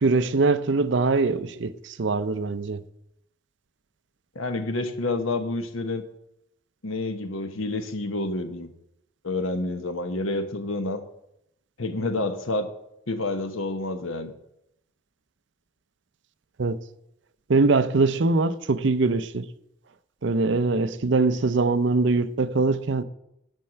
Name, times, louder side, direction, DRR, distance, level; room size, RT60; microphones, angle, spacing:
voice 1, 0.0-2.8 16.6-16.8 17.5-19.5 20.2-23.0, right 3 dB, 60° right, 0.5 m, -22 dB
voice 2, 4.3-6.1 6.8-8.7 9.2-11.0 11.8-12.7 13.1-14.3, left 2 dB, 85° left, 1.1 m, -28 dB
9.0 x 5.6 x 7.7 m
head